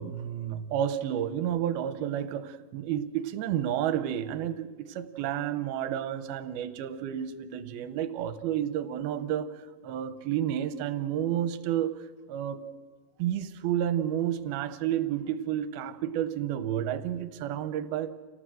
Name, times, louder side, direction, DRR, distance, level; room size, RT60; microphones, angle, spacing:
voice 1, 0.0-9.6 9.8-12.0 12.3-12.7 13.2-18.1, right 10 dB, 80° right, 12 dB, 2.8 m, -31 dB
27.0 x 17.5 x 7.7 m, 1.5 s
omnidirectional pair, 4.4 m